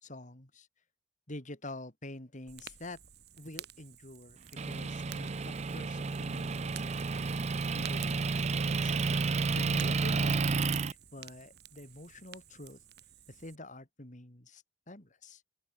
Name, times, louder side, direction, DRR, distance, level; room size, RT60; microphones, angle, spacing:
voice 1, 0.0-0.7 1.3-3.0 3.4-4.4 4.6-9.1 9.5-12.8 13.3-15.4, left 1 dB, 40° left, 3.4 m, -47 dB
Fire, 2.5-13.6, right 10 dB, 60° right, 6.9 m, -52 dB
Motor vehicle (road) / Engine, 4.6-10.9, right 4 dB, 35° right, 0.5 m, -31 dB
open air
head